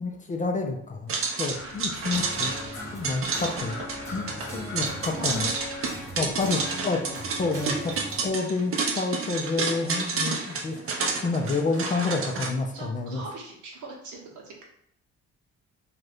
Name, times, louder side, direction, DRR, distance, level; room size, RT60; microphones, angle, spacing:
voice 1, 0.0-2.6 2.9-5.5 6.1-7.0 7.4-8.0 8.2-13.2, left 3 dB, 25° left, 3 dB, 0.4 m, -29 dB
sound 1, 1.1-12.5, right 4 dB, 45° right, 0.6 m, -30 dB
sound 2, 1.5-6.5, left 3 dB, 80° left, 0.7 m, -43 dB
sound 3, 2.1-8.3, equal, 10° left, 0.9 m, -39 dB
voice 2, 4.8-5.5 6.2-7.2 9.9-10.1 12.7-14.6, right 3 dB, 75° right, -1 dB, 0.9 m, -42 dB
2.6 x 2.4 x 3.3 m, 0.70 s
cardioid pair, 90°, 30 cm